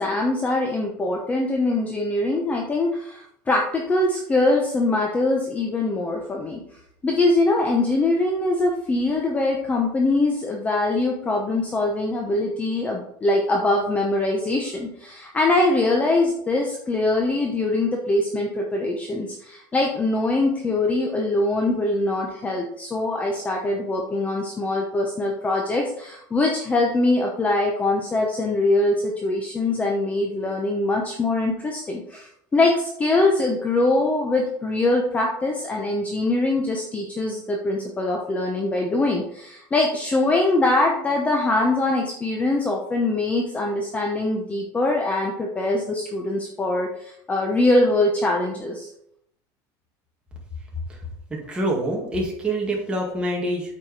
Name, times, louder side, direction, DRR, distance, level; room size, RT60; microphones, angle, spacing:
voice 1, 0.0-6.6 7.0-48.9, left 2 dB, 15° left, 0 dB, 0.8 m, -23 dB
voice 2, 51.3-53.8, right 1 dB, 10° right, -2 dB, 2.0 m, -26 dB
8.7 x 4.8 x 4.7 m, 0.72 s
cardioid pair, 155°, 10 cm